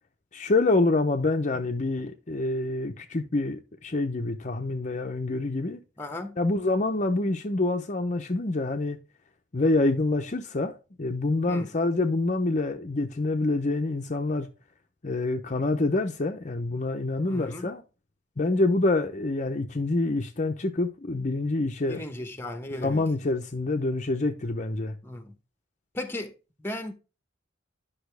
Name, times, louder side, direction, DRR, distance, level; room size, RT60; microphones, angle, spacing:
voice 1, 0.3-5.8 6.4-9.0 9.5-14.5 15.0-17.8 18.4-22.0 22.7-25.0, left 2 dB, 40° left, 0.7 m, -26 dB
voice 2, 6.0-6.4 11.5-11.7 17.2-17.7 21.9-23.0 25.0-25.3 25.9-26.3 26.6-26.9, left 1 dB, 10° left, 1.0 m, -36 dB
10.5 x 5.6 x 3.3 m
head